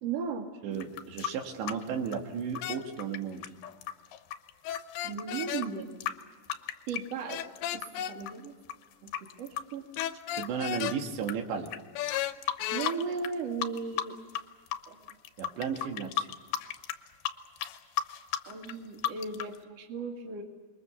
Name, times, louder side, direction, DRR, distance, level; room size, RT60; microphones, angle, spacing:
voice 1, 0.0-0.9 5.0-5.9 6.9-7.4 7.7-7.8 8.1-8.5 9.0-9.1 9.4-9.9 12.4-14.2 14.9-15.0 18.5-20.4, right 5 dB, 45° right, 2 dB, 2.8 m, -36 dB
voice 2, 0.6-3.4 10.3-11.7 15.4-16.3, right 7 dB, 85° right, 3 dB, 4.2 m, -34 dB
sound 1, 0.7-7.9 8.2-11.3 11.7-11.8 12.1-13.3 13.6-14.4 14.7-19.6, left 11 dB, 75° left, 2.6 m, -35 dB
sound 2, 2.6-2.8 4.6-5.7 7.3-8.2 10.0-11.0 12.0-12.9, left 12 dB, 90° left, 3.1 m, -33 dB
27.5 x 22.0 x 7.1 m, 1.4 s
omnidirectional pair, 5.0 m